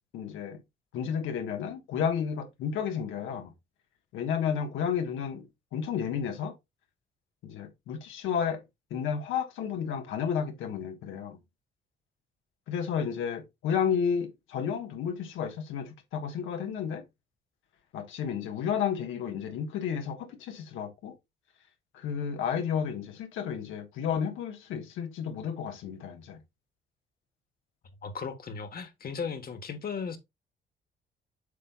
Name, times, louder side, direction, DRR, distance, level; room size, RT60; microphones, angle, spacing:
voice 1, 0.1-0.6 0.9-3.5 4.1-5.5 5.7-6.5 7.4-8.6 8.9-11.4 12.7-17.0 17.9-21.1 21.9-26.4, left 7 dB, 90° left, 1.4 m, -32 dB
voice 2, 28.0-30.2, left 5 dB, 50° left, 1.3 m, -36 dB
8.4 x 5.5 x 2.3 m
cardioid pair, 90°, 20 cm